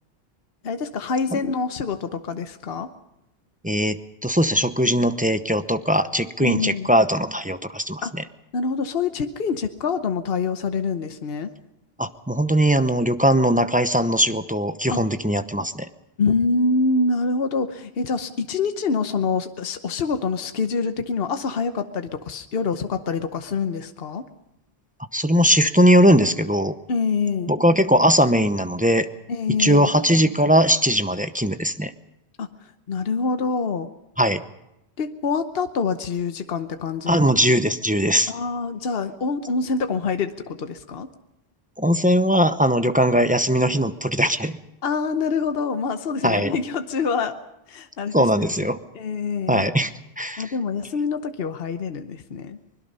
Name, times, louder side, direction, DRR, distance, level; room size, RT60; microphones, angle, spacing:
voice 1, 0.6-2.9 6.4-6.9 8.0-8.1 8.5-11.5 14.9-15.0 16.2-24.2 26.9-27.5 29.3-29.9 32.4-33.9 35.0-37.2 38.3-41.1 44.8-47.4 47.7-48.7 48.9-49.7 50.4-52.6, left 4 dB, 65° left, 8 dB, 1.1 m, -26 dB
voice 2, 3.6-8.0 12.0-15.9 25.1-26.7 27.5-29.1 29.6-31.9 34.2-34.4 37.1-38.3 41.8-44.6 46.2-46.5 48.1-48.8 49.5-49.9 50.2-50.4, equal, 10° right, 9 dB, 0.7 m, -20 dB
24.0 x 21.5 x 5.5 m, 0.87 s
omnidirectional pair, 1.1 m